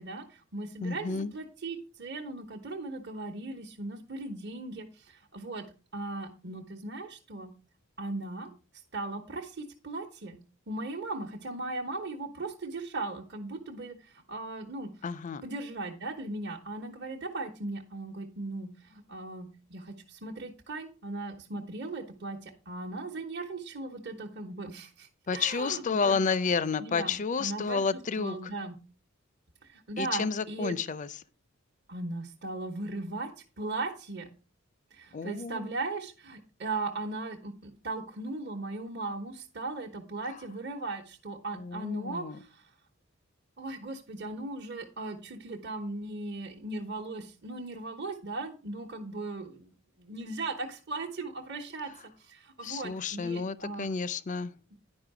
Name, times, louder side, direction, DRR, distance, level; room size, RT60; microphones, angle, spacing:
voice 1, 0.0-5.7 5.9-7.5 8.0-8.5 8.9-10.4 10.7-14.9 15.4-26.2 26.8-28.7 29.6-30.8 31.9-33.3 33.6-34.3 34.9-42.7 43.6-51.9 52.2-53.9, right 2 dB, 55° right, 1.2 m, -38 dB
voice 2, 0.8-1.3 15.0-15.4 25.3-28.4 30.0-31.1 35.1-35.7 41.6-42.4 52.6-54.5, left 5 dB, 35° left, 0.5 m, -30 dB
10.5 x 5.4 x 4.9 m
head